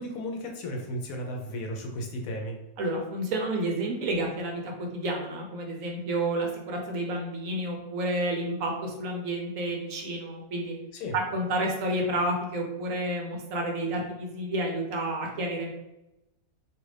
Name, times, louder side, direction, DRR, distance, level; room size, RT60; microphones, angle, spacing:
voice 1, 0.0-2.6 10.9-11.1, equal, 75° left, 2 dB, 1.0 m, -34 dB
voice 2, 2.8-10.8 11.1-15.7, right 1 dB, 70° right, 1 dB, 1.0 m, -30 dB
2.7 x 2.4 x 3.2 m, 0.93 s
omnidirectional pair, 1.6 m